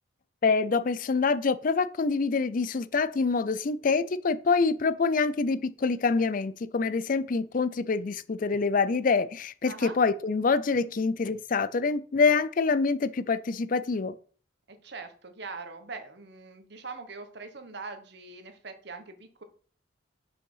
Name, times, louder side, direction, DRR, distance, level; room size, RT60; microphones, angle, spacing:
voice 1, 0.4-14.2, left 4 dB, 45° left, 0.4 m, -26 dB
voice 2, 9.7-10.0 14.7-19.4, right 4 dB, 60° right, 1.2 m, -42 dB
6.3 x 5.5 x 5.6 m
head